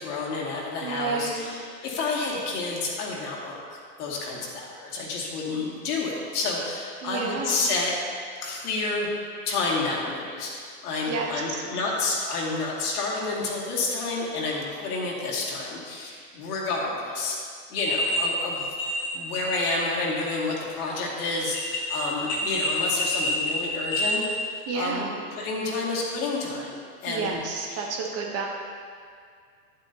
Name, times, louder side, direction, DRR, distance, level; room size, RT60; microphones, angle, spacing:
voice 1, 0.0-8.0 8.4-9.1 9.5-17.4 17.7-24.5 24.7-27.4 27.7-27.9, left 3 dB, 65° left, -3 dB, 2.3 m, -30 dB
voice 2, 0.8-1.5 7.0-7.7 11.1-11.6 24.7-25.2 27.1-28.5, right 4 dB, 30° right, 0 dB, 1.0 m, -31 dB
sound 1, 17.8-18.3 18.5-19.8 20.1-20.2 21.4-24.3, left 1 dB, 45° left, 2.2 m, -28 dB
11.0 x 8.5 x 2.8 m, 2.1 s
hypercardioid pair, 130°, 49 cm